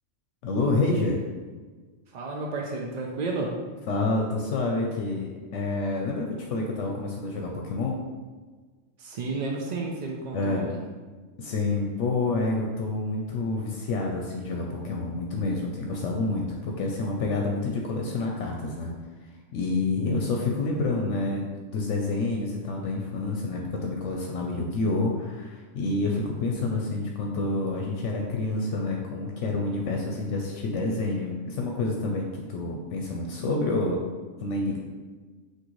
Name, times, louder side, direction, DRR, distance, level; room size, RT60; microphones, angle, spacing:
voice 1, 0.4-1.2 3.9-7.9 10.3-10.7 11.4-18.9 19.5-34.0 34.4-34.8, left 3 dB, 75° left, 0 dB, 0.9 m, -28 dB
voice 2, 2.1-3.6 9.0-10.8, right 3 dB, 65° right, 0 dB, 0.4 m, -32 dB
6.1 x 2.7 x 3.1 m, 1.4 s
omnidirectional pair, 1.3 m